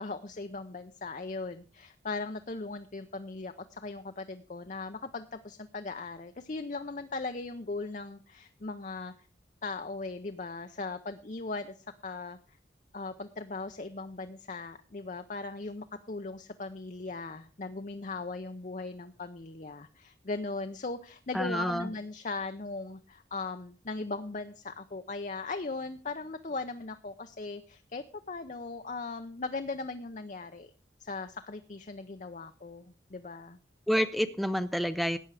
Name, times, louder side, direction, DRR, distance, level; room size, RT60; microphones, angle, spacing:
voice 1, 0.0-9.1 9.6-12.4 12.9-30.7 31.0-33.6, left 3 dB, 40° left, 8 dB, 0.6 m, -38 dB
voice 2, 21.3-21.9 33.9-35.2, equal, ahead, 9 dB, 0.6 m, -28 dB
13.5 x 9.2 x 4.8 m, 0.37 s
head